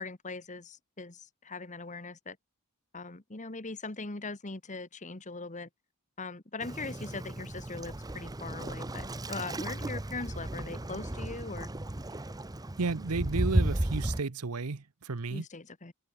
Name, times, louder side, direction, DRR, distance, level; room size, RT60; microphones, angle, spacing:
voice 1, 0.0-2.4 2.9-5.7 6.2-11.7 15.3-15.9, left 3 dB, 35° left, 1.5 m, -40 dB
Waves surf, 6.6-14.2, right 1 dB, 15° right, 0.8 m, -34 dB
voice 2, 12.8-15.4, right 4 dB, 85° right, 0.9 m, -33 dB
head